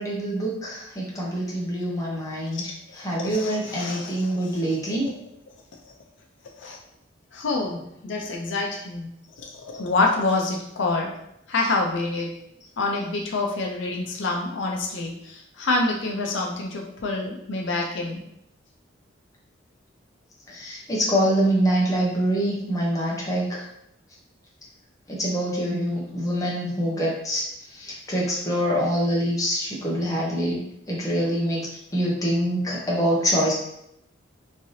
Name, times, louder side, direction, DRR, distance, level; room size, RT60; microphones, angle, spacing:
voice 1, 0.0-2.6 3.0-5.1 20.5-23.6 25.1-27.4 27.7-30.6 30.9-33.5, equal, 20° left, -4 dB, 0.7 m, -25 dB
voice 2, 2.5-5.0 6.6-6.8 7.3-9.1 9.4-11.1 11.5-12.4 12.8-18.2, left 3 dB, 70° left, 0 dB, 0.5 m, -27 dB
3.2 x 2.7 x 2.7 m, 0.76 s
head